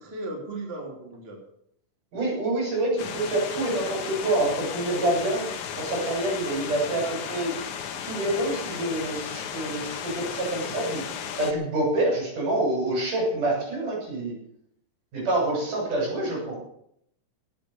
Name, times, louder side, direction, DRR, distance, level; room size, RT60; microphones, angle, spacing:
voice 1, 0.0-1.4, right 2 dB, 20° right, 0 dB, 3.0 m, -36 dB
voice 2, 2.1-5.4 5.8-7.5 8.0-11.1 11.4-14.4 15.1-16.6, right 1 dB, 70° right, -2 dB, 8.8 m, -27 dB
sound 1, 3.0-11.5, left 8 dB, 70° left, 2.7 m, -35 dB
18.0 x 8.5 x 7.0 m, 0.72 s
omnidirectional pair, 3.7 m